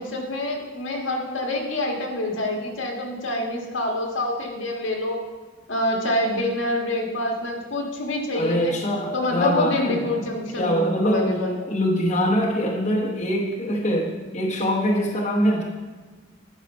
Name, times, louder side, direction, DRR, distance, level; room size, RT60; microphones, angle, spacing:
voice 1, 0.0-5.2 5.7-8.7 9.1-11.8, left 1 dB, 80° left, 1 dB, 1.5 m, -26 dB
voice 2, 8.3-10.2 10.6-11.3 11.7-15.6, equal, 35° left, -2 dB, 1.0 m, -23 dB
10.5 x 4.9 x 5.5 m, 1.3 s
head